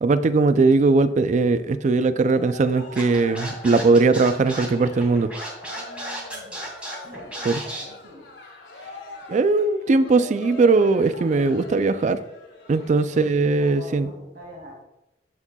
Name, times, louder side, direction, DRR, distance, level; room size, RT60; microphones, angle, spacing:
voice 1, 0.0-5.3 7.5-7.6 9.3-12.2 12.7-14.1, right 3 dB, 45° right, 12 dB, 0.3 m, -19 dB
Cheering, 2.0-13.7, left 2 dB, 90° left, 2.0 m, -43 dB
Scratching (performance technique), 3.0-7.8, right 1 dB, 10° right, 2.2 m, -34 dB
voice 2, 5.7-6.7 7.1-8.3 12.7-13.1 13.4-14.8, left 1 dB, 60° right, -3 dB, 2.3 m, -44 dB
10.5 x 7.2 x 2.3 m, 0.92 s
head